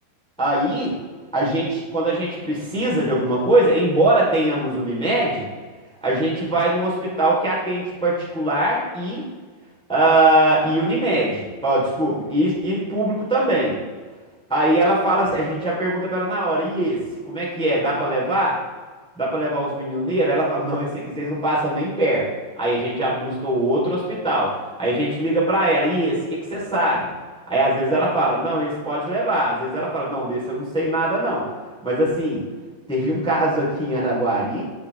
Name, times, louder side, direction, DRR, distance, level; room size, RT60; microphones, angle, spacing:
voice 1, 0.4-0.9 1.3-5.4 6.0-9.2 9.9-13.8 14.5-17.0 17.2-18.6 19.2-22.3 22.6-24.5 24.8-26.2 26.5-27.1 27.5-31.5 31.8-32.4 32.9-34.6, right 1 dB, ahead, -6 dB, 3.9 m, -21 dB
18.5 x 11.0 x 3.8 m, 1.4 s
omnidirectional pair, 5.3 m